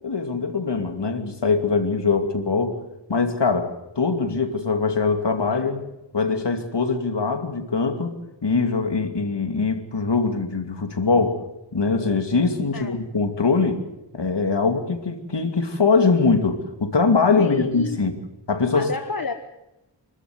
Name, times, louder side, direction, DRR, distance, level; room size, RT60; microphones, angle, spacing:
voice 1, 0.0-2.8 3.1-5.8 6.1-8.2 8.4-11.4 11.7-13.8 14.1-18.2 18.5-18.9, left 4 dB, 65° left, 6 dB, 2.7 m, -22 dB
voice 2, 17.4-18.0 18.7-19.3, left 4 dB, 50° left, 7 dB, 1.3 m, -30 dB
26.0 x 13.0 x 9.4 m, 0.96 s
wide cardioid pair, 65°, 44 cm